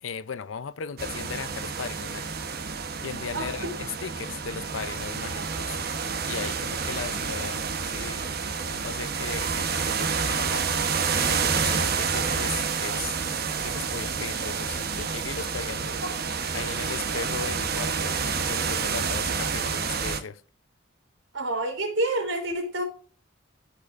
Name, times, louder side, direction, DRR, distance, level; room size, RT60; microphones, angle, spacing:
voice 1, 0.0-5.8 6.2-8.4 8.7-13.2 13.6-16.0 16.5-20.4, left 6 dB, 80° left, 0.6 m, -37 dB
sound 1, 1.0-20.2, right 5 dB, 50° right, 1.0 m, -29 dB
voice 2, 3.3-3.7 16.0-16.1 21.3-22.8, right 1 dB, 80° right, 3.2 m, -28 dB
14.5 x 5.3 x 2.5 m
head